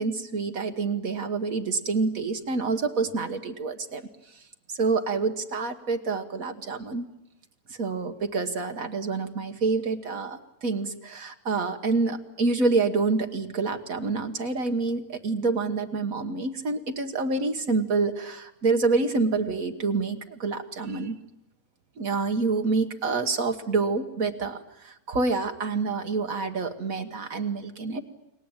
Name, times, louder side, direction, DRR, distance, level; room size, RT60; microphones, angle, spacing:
voice 1, 0.0-4.0 4.7-7.1 7.8-21.2 22.0-28.0, right 4 dB, 65° right, 6 dB, 1.8 m, -27 dB
30.0 x 21.0 x 8.9 m, 0.84 s
omnidirectional pair, 1.6 m